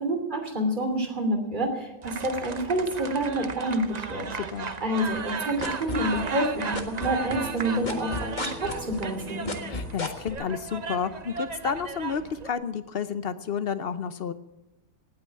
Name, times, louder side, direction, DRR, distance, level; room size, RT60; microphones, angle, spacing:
voice 1, 0.0-4.3 4.8-9.5, right 1 dB, 25° right, 5 dB, 3.0 m, -28 dB
sound 1, 2.0-12.5, right 5 dB, 45° right, 0.5 m, -36 dB
voice 2, 4.3-4.7 9.7-14.3, left 6 dB, 60° left, 12 dB, 0.6 m, -31 dB
sound 2, 5.1-6.5 6.7-10.3, left 2 dB, 25° left, 1.6 m, -33 dB
sound 3, 7.3-10.9, left 3 dB, ahead, 2.7 m, -42 dB
18.5 x 8.8 x 8.4 m, 0.95 s
omnidirectional pair, 1.9 m